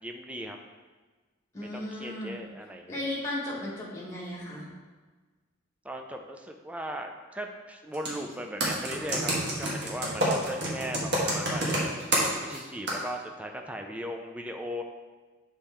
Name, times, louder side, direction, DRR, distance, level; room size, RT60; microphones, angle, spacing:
voice 1, 0.0-0.6 1.7-3.0 5.8-12.0 12.4-14.8, equal, 5° right, 3 dB, 0.4 m, -37 dB
voice 2, 1.5-2.4 2.9-4.7, left 1 dB, 15° left, -6 dB, 1.6 m, -35 dB
Computer keyboard, 7.9-8.2 8.6-12.6 12.9-13.0, right 1 dB, 55° right, 1.4 m, -27 dB
7.0 x 4.3 x 3.5 m, 1.3 s
head